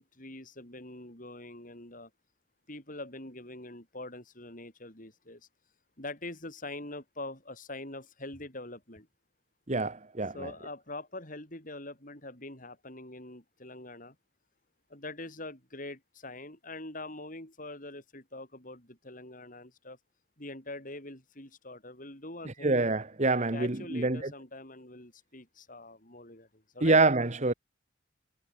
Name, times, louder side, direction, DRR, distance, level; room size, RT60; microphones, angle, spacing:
voice 1, 0.0-2.1 2.7-5.4 6.0-9.1 10.3-14.1 14.9-20.0 20.4-22.7 23.5-27.0, left 2 dB, 45° left, 7.9 m, -44 dB
voice 2, 9.7-10.5 22.6-24.3 26.8-27.5, right 3 dB, 35° right, 1.4 m, -26 dB
head